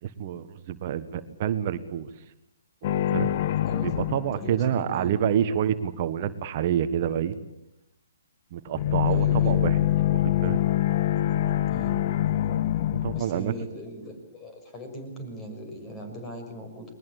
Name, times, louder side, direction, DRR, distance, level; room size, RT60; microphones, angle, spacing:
voice 1, 0.0-2.1 3.0-3.3 3.8-7.3 8.5-9.8 10.1-10.6 13.0-13.5, right 9 dB, 40° right, 11 dB, 1.4 m, -28 dB
sound 1, 2.8-5.1 8.7-13.2, left 12 dB, 45° left, 1.0 m, -25 dB
voice 2, 3.6-4.0 4.3-5.3 9.1-9.6 11.7-12.0 13.1-16.8, equal, 20° left, 5 dB, 6.3 m, -39 dB
22.0 x 20.0 x 8.6 m, 0.84 s
figure-of-eight pair, 135°, 0 cm